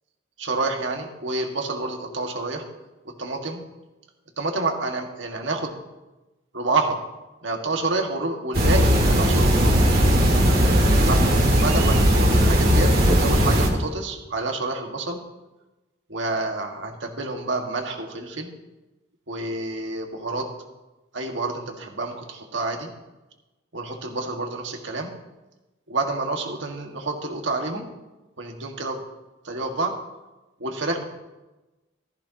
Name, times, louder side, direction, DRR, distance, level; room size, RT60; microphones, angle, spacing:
voice 1, 0.4-2.6 3.1-3.6 4.4-5.8 6.5-7.0 7.4-9.9 11.1-15.2 16.1-18.5 19.3-20.5 21.1-22.9 23.7-25.1 25.9-27.9 28.4-29.0 29.4-29.9 30.6-31.0, right 3 dB, 75° right, 3 dB, 1.8 m, -28 dB
sound 1, 8.5-13.7, equal, 55° right, 2.1 m, -18 dB
15.0 x 14.5 x 2.9 m, 1.1 s
head